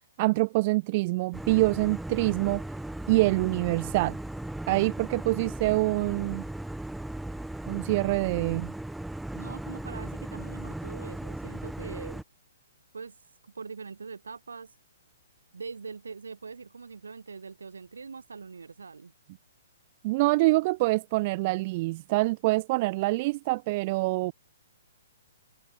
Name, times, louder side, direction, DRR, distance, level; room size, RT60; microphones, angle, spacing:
voice 1, 0.2-2.6 3.1-4.2 4.7-6.4 7.7-8.7 20.0-24.3, right 22 dB, 35° right, 1.5 m, -25 dB
sound 1, 1.3-12.2, right 1 dB, ahead, 0.9 m, -37 dB
voice 2, 9.3-12.2 12.9-13.2 13.4-14.7 15.5-19.1, right 5 dB, 70° right, 4.9 m, -42 dB
figure-of-eight pair, 120°, 0 cm